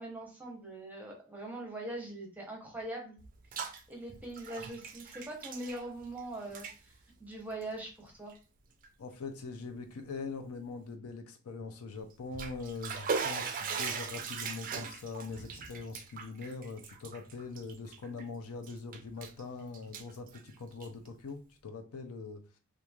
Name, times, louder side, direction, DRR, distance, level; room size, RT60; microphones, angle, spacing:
voice 1, 0.0-3.2 3.6-8.3, right 1 dB, 10° right, 0 dB, 0.7 m, -42 dB
Bathtub (filling or washing), 3.2-3.8 4.1-6.2 6.5-6.8 7.5-7.7 8.3-8.4 8.8-8.9 12.1-18.2 18.6-19.4 19.7-21.1, right 5 dB, 40° right, 0.3 m, -39 dB
voice 2, 9.0-22.4, left 4 dB, 80° left, 6 dB, 0.5 m, -42 dB
3.0 x 2.4 x 2.3 m, 0.34 s
head